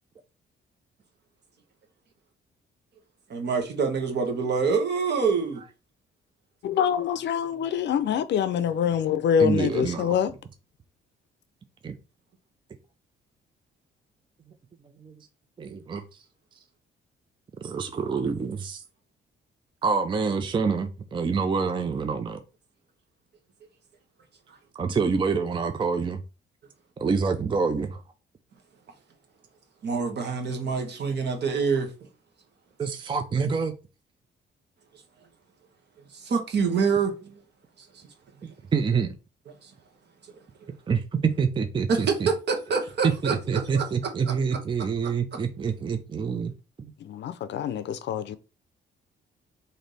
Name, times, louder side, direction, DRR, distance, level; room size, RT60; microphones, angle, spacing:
voice 1, 3.3-5.6 24.5-24.6 29.8-31.9 36.1-37.1 37.8-38.0 39.6-39.7 40.6-40.7 41.9-43.8 44.3-44.4, right 5 dB, 60° right, 1.1 m, -26 dB
voice 2, 6.6-10.3 47.0-48.4, left 8 dB, 65° left, 0.5 m, -25 dB
voice 3, 9.4-10.1 11.8-12.0 15.0-15.1 15.6-16.0 17.6-18.8 19.8-22.4 24.7-26.2 27.0-28.0 32.8-33.7 38.7-39.1 40.9-41.0 41.4-42.3 43.2-46.5 46.8-46.9, right 5 dB, 25° right, 0.4 m, -27 dB
3.3 x 2.6 x 4.0 m
cardioid pair, 90°, 20 cm